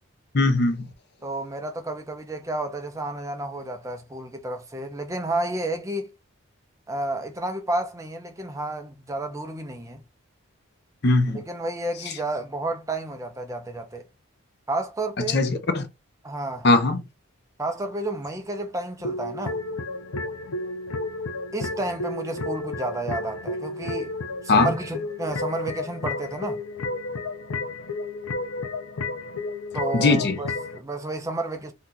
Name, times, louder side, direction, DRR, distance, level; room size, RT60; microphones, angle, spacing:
voice 1, 0.3-0.9 11.0-11.4 15.3-15.9 16.6-17.0 24.5-24.8 29.9-30.4, left 3 dB, 50° left, 0.6 m, -20 dB
voice 2, 1.2-6.1 6.9-10.0 11.3-14.0 14.7-15.4 16.2-16.7 17.6-19.6 21.5-24.1 24.4-26.6 29.7-31.7, right 2 dB, 15° right, 0.5 m, -31 dB
sound 1, 19.0-30.8, left 2 dB, 85° left, 0.6 m, -32 dB
2.8 x 2.3 x 3.7 m
head